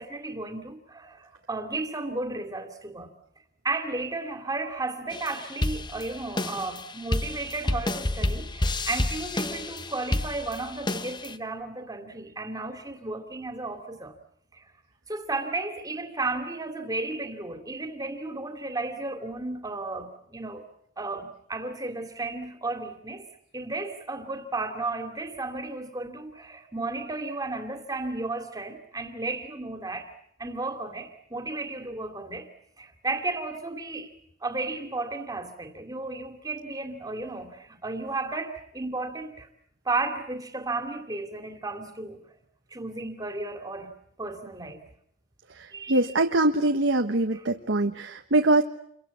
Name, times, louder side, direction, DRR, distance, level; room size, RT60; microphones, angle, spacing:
voice 1, 0.0-3.1 3.6-14.1 14.5-14.7 15.1-20.6 21.0-23.3 23.5-30.1 30.4-32.5 32.8-34.1 34.4-39.5 39.8-42.2 42.7-44.9 45.7-46.0 47.3-47.4, right 3 dB, 20° right, 2.7 m, -33 dB
sound 1, 5.1-11.4, left 1 dB, 25° left, 1.0 m, -30 dB
voice 2, 45.5-48.6, right 2 dB, 90° right, 1.4 m, -23 dB
29.0 x 23.5 x 8.4 m
head